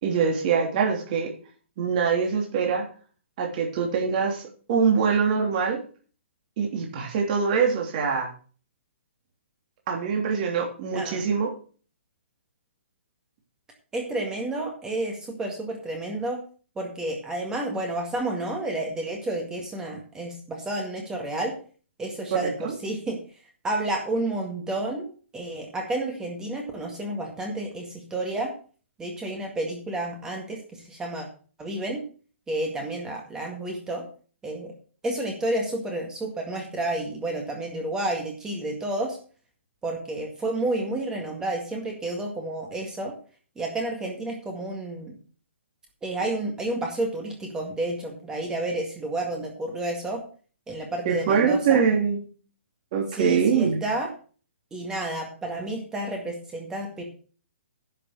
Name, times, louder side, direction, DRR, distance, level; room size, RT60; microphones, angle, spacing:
voice 1, 0.0-1.3 1.8-2.8 3.4-4.4 4.7-5.8 6.6-8.3 9.9-11.5 22.3-22.7 51.0-52.2 52.9-53.8, right 6 dB, 40° right, 0 dB, 3.1 m, -23 dB
voice 2, 13.9-16.4 16.8-21.6 22.0-23.2 23.6-28.5 29.0-31.3 31.6-32.0 32.5-34.1 34.4-34.7 35.0-39.2 39.8-43.1 43.6-45.2 46.0-50.2 50.7-51.8 53.2-54.1 54.7-57.0, right 2 dB, 10° right, 1 dB, 1.9 m, -30 dB
10.5 x 7.0 x 6.6 m, 0.40 s
hypercardioid pair, 155°, 7 cm